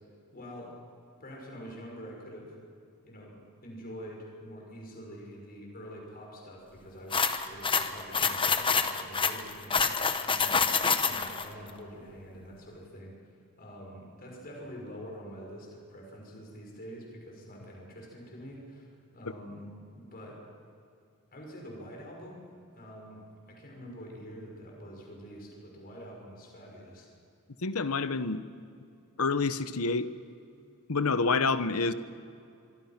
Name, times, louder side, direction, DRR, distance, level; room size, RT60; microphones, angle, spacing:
voice 1, 0.3-0.7 1.2-2.5 3.0-13.1 13.6-20.4 21.3-22.4 22.7-27.1, equal, 45° left, -1 dB, 6.1 m, -46 dB
sound 1, 7.1-11.5, left 5 dB, 25° left, 1.0 m, -27 dB
voice 2, 27.6-28.4 29.2-30.1 30.9-31.9, left 4 dB, 75° left, 13 dB, 1.0 m, -27 dB
25.5 x 24.0 x 5.9 m, 2.5 s
head